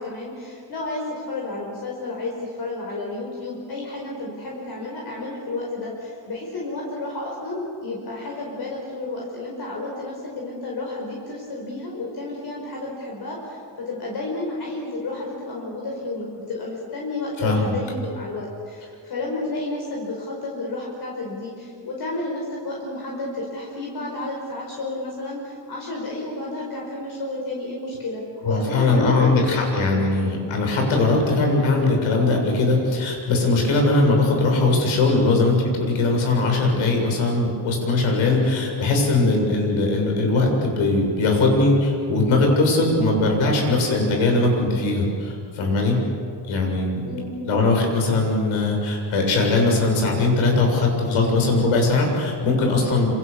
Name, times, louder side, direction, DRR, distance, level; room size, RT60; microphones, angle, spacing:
voice 1, 0.0-30.1 47.1-47.4, left 2 dB, 50° left, -2 dB, 5.2 m, -31 dB
voice 2, 17.4-17.7 28.4-46.0 46.5-47.0 47.5-53.1, left 2 dB, 85° left, 1 dB, 7.2 m, -20 dB
27.5 x 26.5 x 7.1 m, 2.5 s
cardioid pair, 145°, 47 cm